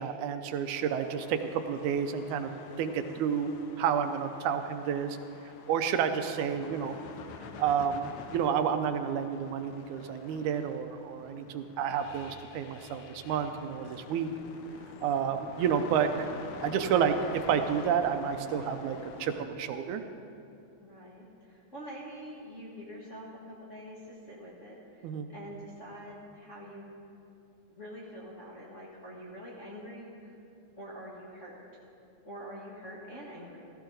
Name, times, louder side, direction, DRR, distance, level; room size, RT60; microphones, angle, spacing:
voice 1, 0.0-2.5 2.8-5.2 5.7-6.9 7.6-14.3 15.0-16.3 16.6-17.1 17.5-20.0 25.0-25.3, right 8 dB, 80° right, 8 dB, 2.0 m, -30 dB
sound 1, 0.7-19.4, left 5 dB, 75° left, 1.9 m, -47 dB
voice 2, 20.8-27.0 27.7-30.4 30.8-31.6 32.2-33.7, equal, 35° left, -6 dB, 1.2 m, -45 dB
15.5 x 14.0 x 3.9 m, 2.6 s
omnidirectional pair, 3.5 m